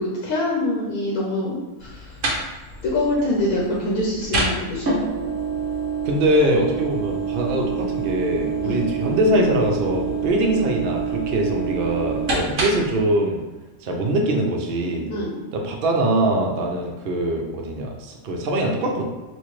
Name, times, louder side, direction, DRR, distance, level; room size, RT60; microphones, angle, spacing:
voice 1, 0.0-2.1 2.8-5.0 8.6-8.8 15.1-15.3, left 1 dB, 80° left, -4 dB, 1.2 m, -24 dB
sound 1, 1.8-13.0, right 4 dB, 60° right, 1.1 m, -27 dB
voice 2, 6.0-13.4 13.8-15.1 15.5-19.1, right 1 dB, 75° right, 0 dB, 0.5 m, -22 dB
4.2 x 2.2 x 3.1 m, 1.1 s
omnidirectional pair, 1.5 m